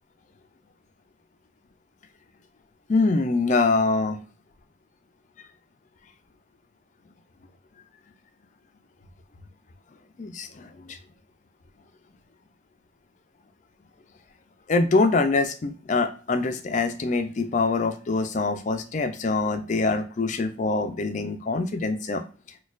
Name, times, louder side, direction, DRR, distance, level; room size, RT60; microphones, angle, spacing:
voice 1, 2.9-4.2 10.2-11.0 14.7-22.2, left 3 dB, 35° left, 7 dB, 0.3 m, -24 dB
4.1 x 2.3 x 2.4 m, 0.38 s
head